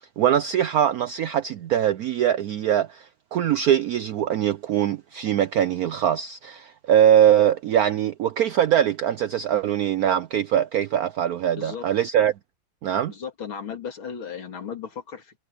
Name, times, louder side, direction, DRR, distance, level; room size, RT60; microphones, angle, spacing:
voice 1, 0.2-12.3 12.8-13.1, right 10 dB, 75° right, 0.8 m, -22 dB
voice 2, 13.1-15.4, left 7 dB, 90° left, 3.3 m, -35 dB
omnidirectional pair, 2.2 m